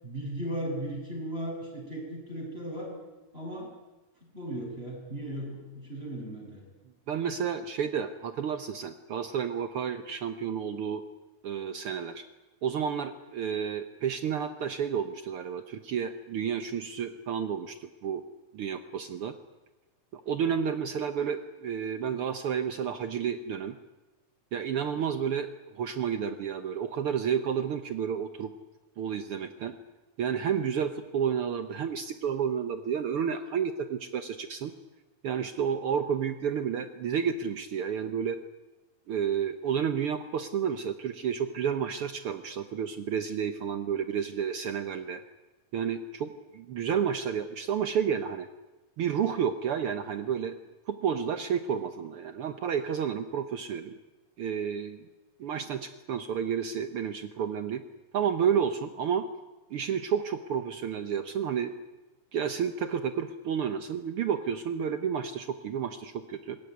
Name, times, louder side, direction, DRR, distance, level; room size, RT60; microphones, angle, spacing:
voice 1, 0.0-2.9 3.3-3.7 4.3-6.6, right 1 dB, 15° right, -3 dB, 7.6 m, -36 dB
voice 2, 7.1-11.0 11.4-12.2 12.6-18.2 18.5-19.4 20.1-23.8 24.5-28.5 29.0-29.7 30.2-34.7 35.2-38.4 39.1-45.2 45.7-48.5 49.0-50.6 50.9-54.0 54.4-55.1 55.4-57.8 58.1-59.2 59.7-61.7 62.3-66.6, right 7 dB, 75° right, 9 dB, 1.2 m, -31 dB
26.5 x 20.5 x 9.5 m, 1.1 s
omnidirectional pair, 4.0 m